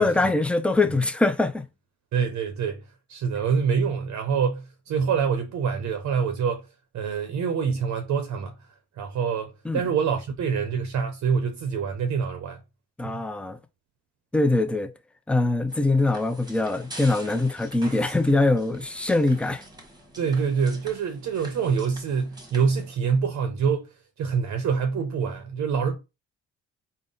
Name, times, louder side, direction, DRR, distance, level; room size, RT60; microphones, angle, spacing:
voice 1, 0.0-1.6 9.6-9.8 13.0-13.6 14.3-14.9 15.3-19.6, left 2 dB, 5° left, 0.4 m, -23 dB
voice 2, 2.1-2.8 3.1-6.7 6.9-8.5 9.0-12.6 13.0-13.2 20.2-23.9 24.2-26.0, right 6 dB, 70° right, 0.6 m, -26 dB
sound 1, 15.7-22.9, right 1 dB, 15° right, 1.0 m, -45 dB
3.7 x 2.1 x 3.8 m
cardioid pair, 90°, 30 cm